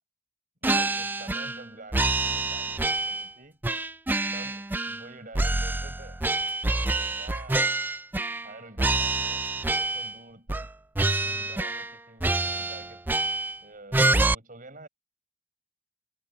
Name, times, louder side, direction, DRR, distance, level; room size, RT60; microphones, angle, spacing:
sound 1, 0.6-1.6 1.9-3.3 3.6-5.1 5.3-8.5 8.8-10.2 10.5-10.7 11.0-11.9 12.2-13.6 13.9-14.3, right 2 dB, 10° right, 0.3 m, -26 dB
voice 1, 0.6-3.6 4.3-6.2 6.8-7.8 8.4-10.7 11.0-13.0 13.6-14.9, right 2 dB, 45° right, 6.6 m, -48 dB
head